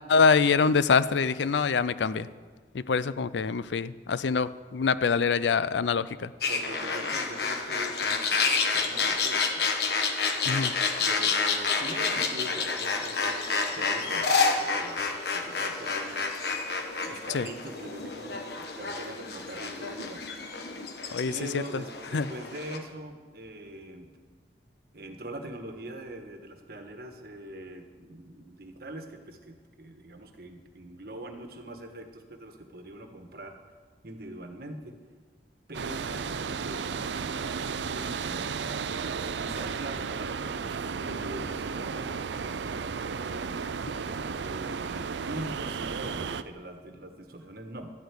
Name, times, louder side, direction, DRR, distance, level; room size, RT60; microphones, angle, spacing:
voice 1, 0.1-2.3 2.7-6.3 10.5-10.7 17.3-17.5 21.1-21.6 22.1-22.3, left 5 dB, 90° left, 16 dB, 0.5 m, -25 dB
sound 1, 6.4-22.8, left 4 dB, 65° left, 1.3 m, -29 dB
voice 2, 6.5-9.7 11.0-15.1 15.3-16.3 17.0-20.3 21.3-24.1 24.9-33.5 34.0-35.0 35.7-38.8 39.4-43.6 44.3-47.9, right 1 dB, 60° right, 5 dB, 1.4 m, -42 dB
sound 2, 35.7-46.4, right 5 dB, 85° right, 0.5 m, -33 dB
12.5 x 8.1 x 8.3 m, 1.5 s
head